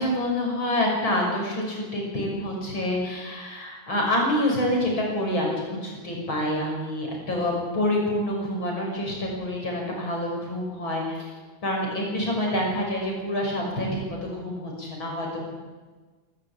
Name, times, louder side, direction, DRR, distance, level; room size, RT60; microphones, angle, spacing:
voice 1, 0.0-11.3 11.6-15.6, left 1 dB, 80° left, -1 dB, 7.3 m, -27 dB
28.5 x 14.0 x 8.7 m, 1.4 s
omnidirectional pair, 2.2 m